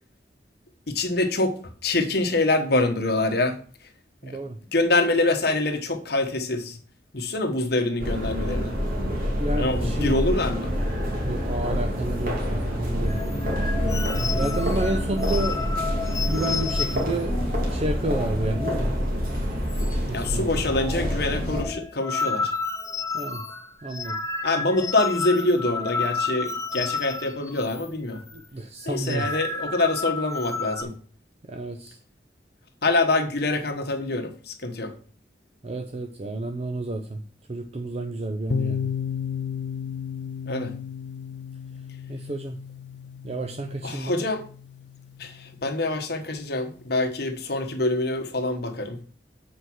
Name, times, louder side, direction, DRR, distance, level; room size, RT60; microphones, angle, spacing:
voice 1, 0.9-1.6 1.8-3.6 4.7-6.8 7.1-8.7 9.6-10.7 20.1-22.5 24.4-28.2 28.8-30.9 32.8-34.9 40.5-40.7 43.8-44.4 45.2-49.0, left 2 dB, 65° left, 6 dB, 1.3 m, -25 dB
voice 2, 4.2-4.6 9.4-10.1 11.2-13.2 14.3-15.6 16.2-17.4 17.7-18.9 20.1-20.5 23.1-23.4 23.8-24.2 28.5-29.3 31.5-32.0 35.6-37.2 37.5-38.9 42.1-42.6 43.2-44.2, right 2 dB, 35° right, 6 dB, 0.6 m, -30 dB
sound 1, 8.0-21.6, equal, 55° right, 2.4 m, -27 dB
sound 2, 13.0-19.0 19.3-19.4 19.7-20.3 20.5-27.9 28.1-28.4 28.8-30.8, left 4 dB, 20° left, 0.6 m, -32 dB
sound 3, 38.5-46.2, left 7 dB, 85° left, 0.4 m, -34 dB
7.8 x 4.7 x 6.2 m, 0.42 s
head